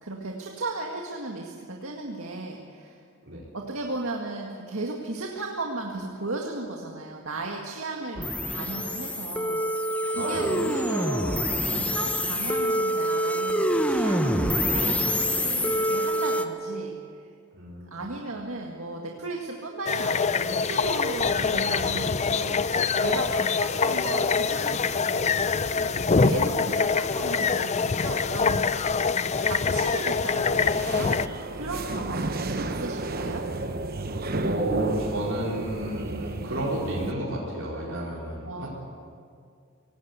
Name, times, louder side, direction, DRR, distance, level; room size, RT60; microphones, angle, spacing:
voice 1, 0.0-3.0 3.5-17.3 17.9-28.6 29.1-31.1 31.5-33.5 38.4-38.7, right 2 dB, 85° right, 0 dB, 2.0 m, -35 dB
sound 1, 8.2-16.5, equal, 5° left, 0.9 m, -26 dB
voice 2, 10.1-10.5 17.5-18.0 29.0-29.3 31.8-32.0 34.4-38.7, right 1 dB, 65° right, -6 dB, 4.8 m, -32 dB
sound 2, 19.9-31.3, left 5 dB, 35° left, 0.5 m, -25 dB
sound 3, 30.6-37.1, right 2 dB, 45° right, 1.0 m, -32 dB
24.5 x 18.5 x 8.2 m, 2.3 s
head